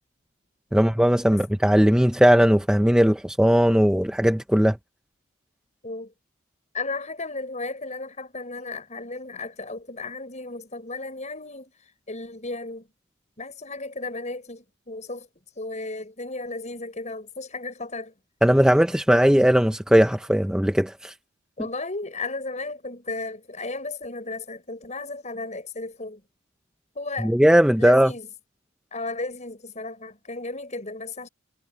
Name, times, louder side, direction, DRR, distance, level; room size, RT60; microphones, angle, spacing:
voice 1, 0.7-4.8 18.4-21.1 27.2-28.1, equal, 5° right, 0.6 m, -18 dB
voice 2, 6.7-11.7 12.1-12.9 13.4-15.3 15.6-18.1 21.6-26.2 26.9-27.3 27.8-28.3 28.9-31.3, left 3 dB, 35° left, 6.6 m, -34 dB
head